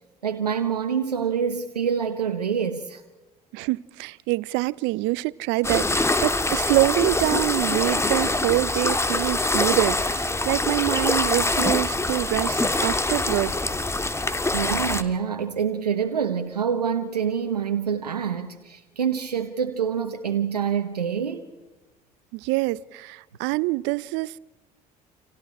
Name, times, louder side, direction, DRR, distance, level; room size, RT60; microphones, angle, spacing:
voice 1, 0.2-3.0 14.5-21.6, right 7 dB, 90° right, 1.2 m, -26 dB
voice 2, 3.5-13.5 22.4-24.4, right 21 dB, 65° right, 0.7 m, -25 dB
sound 1, 5.6-15.0, left 2 dB, 15° left, 1.9 m, -24 dB
30.0 x 27.5 x 4.4 m
hypercardioid pair, 60°, 20 cm